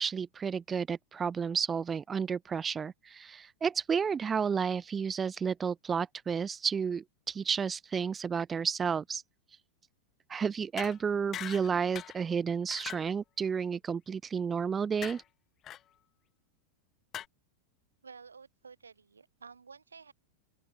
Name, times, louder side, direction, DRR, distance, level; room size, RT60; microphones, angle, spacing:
voice 1, 0.0-9.2 10.3-15.2, right 6 dB, 20° right, 1.9 m, -31 dB
sound 1, 10.8-11.0 11.3-11.7 12.0-12.2 12.7-13.1 15.0-15.2 15.6-15.8 17.1-17.3, left 11 dB, 30° left, 3.1 m, -41 dB
voice 2, 18.0-20.1, right 5 dB, 75° right, 6.9 m, -52 dB
open air
figure-of-eight pair, 90°, 0 cm